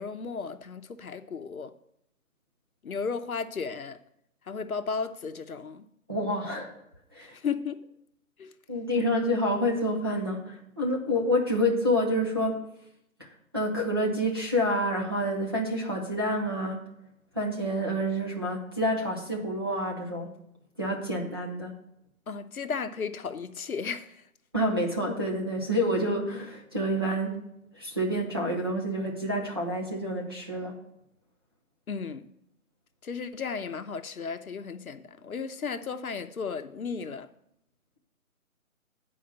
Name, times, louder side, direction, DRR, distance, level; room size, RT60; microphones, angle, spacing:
voice 1, 0.0-1.7 2.8-4.0 4.5-5.9 7.2-7.8 8.4-8.5 22.3-24.2 31.9-32.3 33.0-37.3, left 5 dB, 75° left, 0.9 m, -34 dB
voice 2, 6.1-6.7 7.1-7.3 8.7-12.6 13.2-16.8 17.3-20.3 20.8-21.7 24.5-27.5 27.7-30.8, equal, 15° right, 0.7 m, -28 dB
8.8 x 5.0 x 6.8 m
figure-of-eight pair, 160°, 43 cm